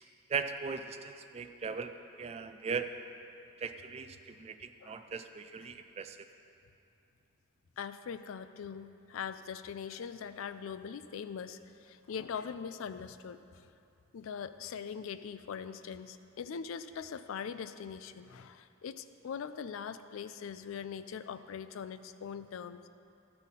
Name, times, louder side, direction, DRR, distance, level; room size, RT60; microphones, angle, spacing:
voice 1, 0.3-1.9 2.2-2.9 3.6-6.2, right 5 dB, 30° right, 9 dB, 0.3 m, -38 dB
voice 2, 7.8-13.7 14.1-22.8, left 7 dB, 80° left, 12 dB, 0.4 m, -42 dB
14.5 x 5.6 x 4.1 m, 2.6 s
head